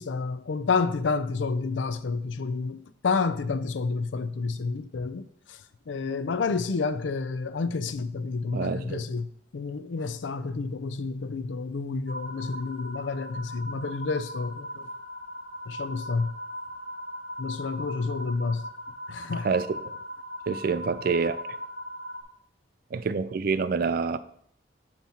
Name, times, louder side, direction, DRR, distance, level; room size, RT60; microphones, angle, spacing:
voice 1, 0.0-9.3 9.5-14.9 15.7-16.3 17.4-18.7 19.1-19.5, left 4 dB, 75° left, 0.5 m, -30 dB
voice 2, 8.5-9.0 19.4-19.7 20.5-21.5 22.9-24.2, right 5 dB, 50° right, 0.4 m, -27 dB
sound 1, 12.1-22.2, equal, 55° left, 1.8 m, -39 dB
9.1 x 3.1 x 4.3 m
head